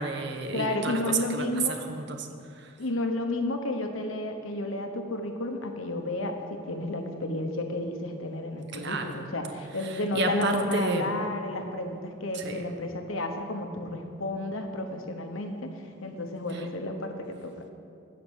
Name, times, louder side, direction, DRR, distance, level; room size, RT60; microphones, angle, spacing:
voice 1, 0.0-2.3 8.7-9.1 10.1-11.1 12.3-12.6, right 3 dB, 55° right, 5 dB, 0.9 m, -30 dB
voice 2, 0.5-1.8 2.8-15.7 16.0-17.5, left 1 dB, 85° left, 5 dB, 1.1 m, -32 dB
13.0 x 4.5 x 8.2 m, 2.5 s
head